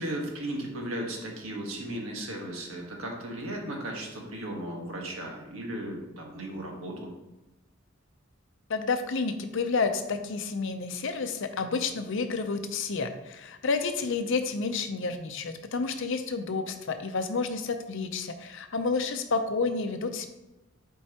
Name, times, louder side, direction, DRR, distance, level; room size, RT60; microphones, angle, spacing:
voice 1, 0.0-7.1, right 1 dB, 80° right, 0 dB, 1.4 m, -36 dB
voice 2, 8.7-20.3, left 4 dB, 65° left, 8 dB, 0.6 m, -30 dB
7.6 x 4.5 x 2.9 m, 1.0 s
head